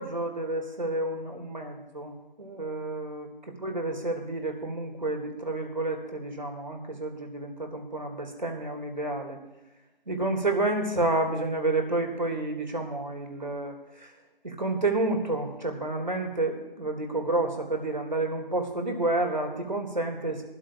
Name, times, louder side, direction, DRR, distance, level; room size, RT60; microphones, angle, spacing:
voice 1, 0.0-3.3 3.6-9.4 10.1-14.1 14.4-20.4, right 2 dB, 50° right, 3 dB, 2.2 m, -30 dB
22.0 x 12.5 x 2.4 m, 0.97 s
figure-of-eight pair, 175°, 30 cm